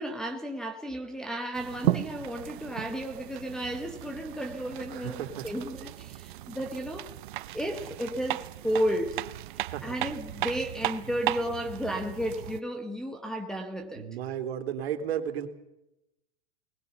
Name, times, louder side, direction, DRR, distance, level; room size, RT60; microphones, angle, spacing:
voice 1, 0.0-7.1 7.5-9.2 9.5-14.1, equal, ahead, 0.9 m, -33 dB
sound 1, 1.5-12.6, right 15 dB, 50° right, 0.8 m, -36 dB
voice 2, 4.9-5.5 9.7-9.9 14.0-15.5, right 9 dB, 75° right, 3.0 m, -33 dB
20.5 x 20.0 x 6.9 m
supercardioid pair, 180°, 32 cm